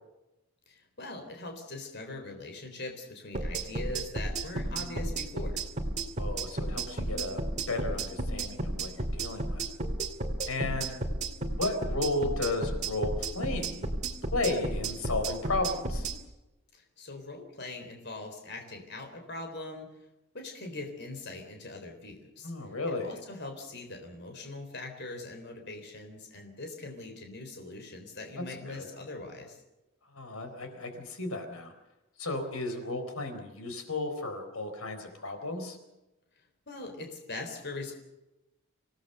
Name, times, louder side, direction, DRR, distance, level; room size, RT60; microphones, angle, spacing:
voice 1, 0.7-5.6 16.7-19.9 20.3-22.5 23.0-29.6 36.7-37.9, left 2 dB, 50° left, 4 dB, 3.9 m, -42 dB
sound 1, 3.3-16.2, right 2 dB, 35° right, 2.6 m, -32 dB
voice 2, 6.2-9.6 10.5-11.0 11.4-13.9 14.3-16.1 22.4-23.2 28.4-28.9 30.1-31.7 32.2-35.8, left 2 dB, 85° left, 6 dB, 4.2 m, -34 dB
26.5 x 17.5 x 6.8 m, 0.98 s
head